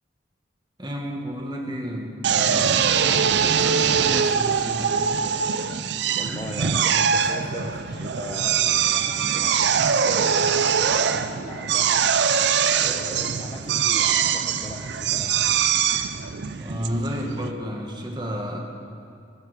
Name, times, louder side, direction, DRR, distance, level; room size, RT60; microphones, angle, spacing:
voice 1, 0.8-3.1 3.4-5.1 16.0-16.1 16.6-18.6, equal, 25° right, 1 dB, 1.7 m, -31 dB
Drill, 2.2-17.5, right 7 dB, 70° right, 0.6 m, -22 dB
voice 2, 6.2-12.1 12.8-15.5, left 1 dB, 25° left, 2 dB, 0.8 m, -39 dB
sound 1, 9.4-10.4, right 1 dB, 45° right, 1.3 m, -46 dB
18.5 x 15.0 x 5.0 m, 2.4 s
head